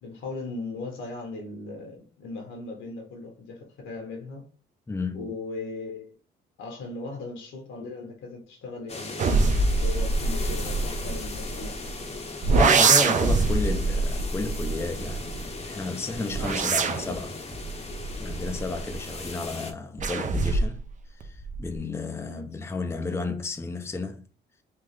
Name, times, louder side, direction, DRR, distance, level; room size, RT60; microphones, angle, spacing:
voice 1, 0.0-4.4 5.1-6.1 6.6-11.9 22.2-22.5, left 3 dB, 80° left, 1.3 m, -38 dB
voice 2, 4.9-5.3 12.5-17.4 18.2-20.8 21.1-24.2, left 3 dB, 15° left, 0.5 m, -32 dB
sound 1, 8.9-19.7, left 3 dB, 30° left, 0.8 m, -38 dB
sound 2, 9.2-11.9 12.4-15.5 16.1-19.2 20.0-20.9 21.2-21.8, right 3 dB, 40° right, 0.5 m, -24 dB
3.6 x 2.4 x 3.2 m
cardioid pair, 90°, 20 cm